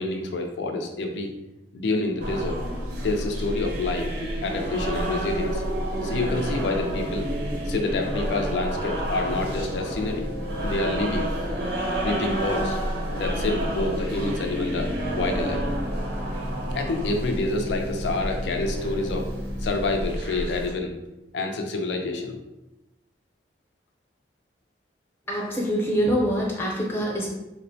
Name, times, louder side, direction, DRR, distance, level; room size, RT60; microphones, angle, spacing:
voice 1, 0.0-1.3 1.7-2.6 3.0-4.1 4.4-5.6 6.0-7.3 7.7-10.3 10.6-11.3 12.0-12.8 13.2-15.6 16.7-19.3 19.6-20.9 21.3-22.4, left 2 dB, 75° left, 3 dB, 0.4 m, -28 dB
sound 1, 2.2-20.7, equal, 60° right, 0.5 m, -29 dB
voice 2, 25.3-27.3, equal, 15° left, -3 dB, 0.6 m, -25 dB
3.6 x 2.1 x 2.6 m, 0.95 s
head